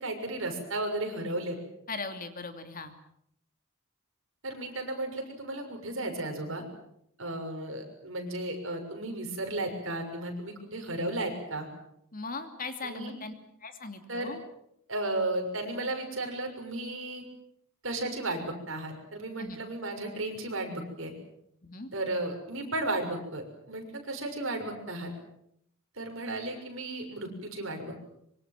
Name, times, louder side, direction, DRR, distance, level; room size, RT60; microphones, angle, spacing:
voice 1, 0.0-1.6 4.4-6.6 7.2-11.7 12.8-13.1 14.1-14.3 14.9-17.2 17.8-21.1 21.9-25.1 26.0-28.1, right 2 dB, 60° right, 4 dB, 6.5 m, -34 dB
voice 2, 1.9-2.9 12.1-13.3 13.6-14.4 19.4-19.6 21.6-21.9, left 3 dB, 40° left, 7 dB, 2.7 m, -39 dB
25.0 x 24.5 x 7.6 m, 0.74 s
head